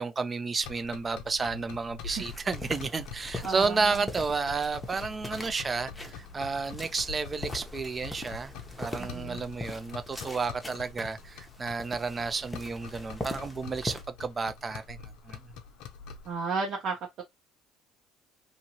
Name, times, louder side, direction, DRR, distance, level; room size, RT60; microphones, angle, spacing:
voice 1, 0.0-8.5 8.8-15.0 15.3-15.4, right 4 dB, 25° right, 0.5 m, -31 dB
sound 1, 0.6-16.3, left 5 dB, 80° left, 0.6 m, -45 dB
sound 2, 2.1-14.0, left 1 dB, 10° left, 0.8 m, -42 dB
voice 2, 3.4-3.7 9.0-9.4 16.3-17.2, right 4 dB, 60° right, 0.8 m, -33 dB
2.7 x 2.6 x 2.9 m
cardioid pair, 105°, 0 cm